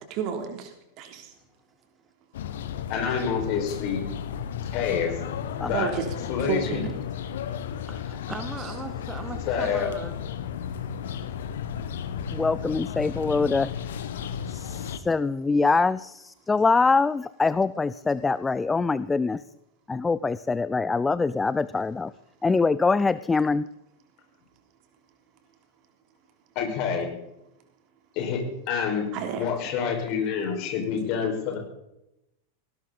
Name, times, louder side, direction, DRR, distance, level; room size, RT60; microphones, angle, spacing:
voice 1, 0.1-1.3 5.7-6.1 6.5-6.8 29.1-29.5, right 6 dB, 40° right, 3.2 m, -30 dB
sound 1, 2.3-15.0, left 8 dB, 60° left, 1.4 m, -34 dB
voice 2, 2.9-4.0 4.7-5.2 5.7-5.9 6.3-6.8 9.5-9.9 26.6-27.1 28.2-29.1 29.4-31.6, left 7 dB, 40° left, 5.5 m, -27 dB
voice 3, 7.9-10.1, right 3 dB, 15° right, 2.0 m, -38 dB
voice 4, 12.3-13.7 14.5-19.4 19.9-22.1 22.4-23.7, left 4 dB, 10° left, 0.5 m, -24 dB
19.0 x 18.0 x 4.2 m
figure-of-eight pair, 90°, 0 cm